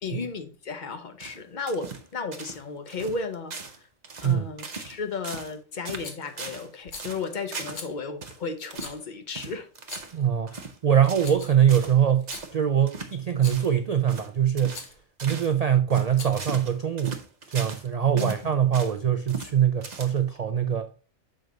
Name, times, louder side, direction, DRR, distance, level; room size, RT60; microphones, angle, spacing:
voice 1, 0.0-3.7 4.2-9.7 10.5-10.6 18.1-18.3, left 4 dB, 45° left, 0.7 m, -34 dB
sound 1, 1.2-2.1 2.3-2.6 2.9-3.2 3.5-5.0 5.2-5.6 5.8-6.7 7.0-7.9 8.2-8.4 8.7-9.0 9.3-10.2 10.5-10.8 11.1-11.4 11.7-12.0 12.3-12.5 12.9-13.1 13.5-13.7 14.1-14.3 14.6-14.9 15.2-15.5 15.9-17.9 18.2-19.0 19.3-19.5 19.8-20.4, right 4 dB, 40° right, 0.8 m, -39 dB
Rattle, 6.0-6.3 6.8-7.1 7.7-7.9 8.7-9.0 9.8-10.2 11.0-11.7 12.1-12.5 13.3-13.7 14.7-15.0 16.0-16.5, left 4 dB, 70° left, 1.5 m, -41 dB
voice 2, 10.1-14.8 15.2-17.2 17.5-20.9, right 9 dB, 85° right, 0.3 m, -23 dB
6.6 x 4.6 x 3.9 m
omnidirectional pair, 1.3 m